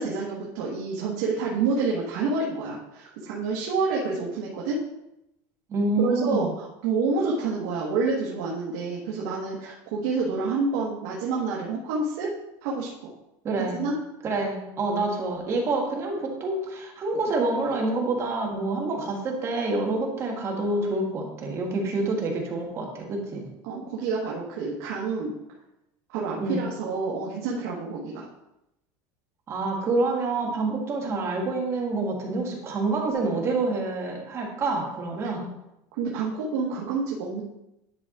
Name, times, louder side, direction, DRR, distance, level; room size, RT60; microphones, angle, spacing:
voice 1, 0.0-4.8 6.0-6.5 6.8-12.3 12.6-13.1 13.7-13.9 23.6-25.3 26.1-28.1 36.0-37.4, right 4 dB, 75° right, -4 dB, 1.5 m, -28 dB
voice 2, 5.7-6.5 13.4-13.8 14.2-23.4 26.3-26.6 29.5-35.5, right 2 dB, 30° right, 0 dB, 1.6 m, -27 dB
10.5 x 4.7 x 3.7 m, 0.87 s
cardioid pair, 160°, 9 cm